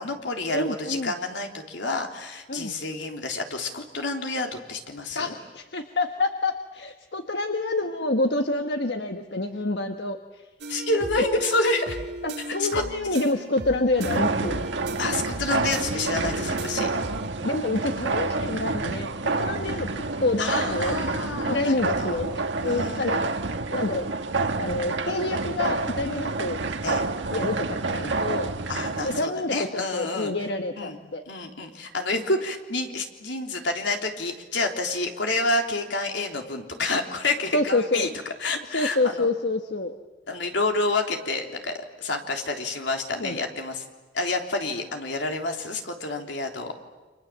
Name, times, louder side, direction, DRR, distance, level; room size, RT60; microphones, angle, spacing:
voice 1, 0.0-5.3 10.7-12.0 12.5-12.8 15.0-16.9 20.4-22.2 22.6-23.3 26.8-27.0 28.7-30.3 30.8-31.0 31.3-38.1 38.4-39.3 40.3-43.8 44.1-46.7, left 2 dB, 85° left, 3 dB, 3.5 m, -29 dB
voice 2, 0.5-1.1 2.5-2.7 5.1-10.5 12.2-14.7 17.4-21.0 21.5-23.3 23.7-24.1 24.6-26.6 27.3-28.5 29.0-31.2 37.5-38.1 38.7-39.9 43.2-43.4, left 2 dB, 70° left, 6 dB, 1.4 m, -27 dB
sound 1, 10.6-17.3, right 2 dB, 70° right, 2.3 m, -36 dB
sound 2, 14.0-29.3, right 3 dB, 85° right, 1.5 m, -28 dB
29.5 x 26.5 x 7.6 m, 1.3 s
head